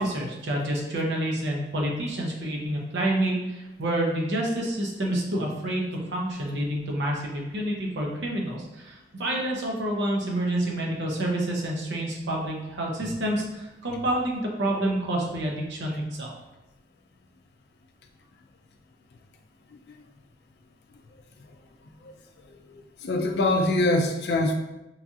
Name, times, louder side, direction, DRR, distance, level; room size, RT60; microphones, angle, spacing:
voice 1, 0.0-16.3, right 1 dB, 85° right, -1 dB, 0.7 m, -28 dB
voice 2, 22.7-24.5, left 2 dB, 65° left, 4 dB, 0.4 m, -24 dB
3.1 x 2.6 x 2.3 m, 1.0 s
head